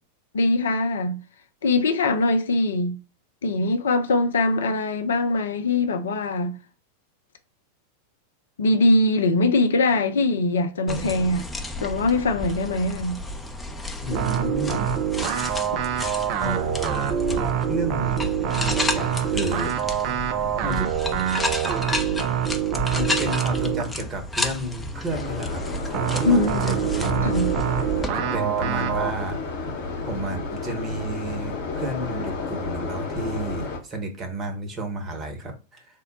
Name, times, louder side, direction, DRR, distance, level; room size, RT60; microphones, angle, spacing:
voice 1, 0.3-1.2 1.6-3.0 3.4-6.6 8.6-11.5 11.8-13.2 26.2-26.8 27.2-27.5, left 2 dB, 65° left, 0.5 m, -22 dB
sound 1, 10.9-28.1, left 1 dB, 10° left, 0.5 m, -31 dB
voice 2, 14.0-15.6 16.4-17.4 17.7-19.7 20.6-20.9 22.9-25.6 25.9-27.6 28.1-29.4 30.0-35.9, right 1 dB, 25° right, 1.1 m, -32 dB
sound 2, 14.1-24.0 25.9-29.1, right 10 dB, 40° right, 0.4 m, -25 dB
sound 3, 25.1-33.8, left 3 dB, 50° left, 0.9 m, -31 dB
3.6 x 2.1 x 4.0 m
figure-of-eight pair, 90°, 0 cm